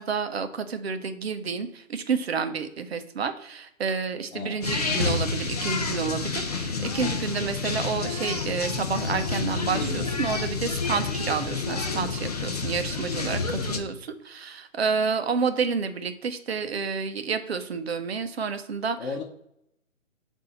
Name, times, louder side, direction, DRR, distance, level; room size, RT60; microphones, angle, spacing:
voice 1, 0.0-19.0, right 5 dB, 50° right, 9 dB, 0.7 m, -29 dB
sound 1, 4.6-13.8, left 4 dB, 30° left, 0.5 m, -29 dB
voice 2, 13.5-13.9 19.0-19.2, left 4 dB, 55° left, -2 dB, 1.0 m, -35 dB
6.6 x 2.7 x 5.6 m, 0.77 s
hypercardioid pair, 155°, 40 cm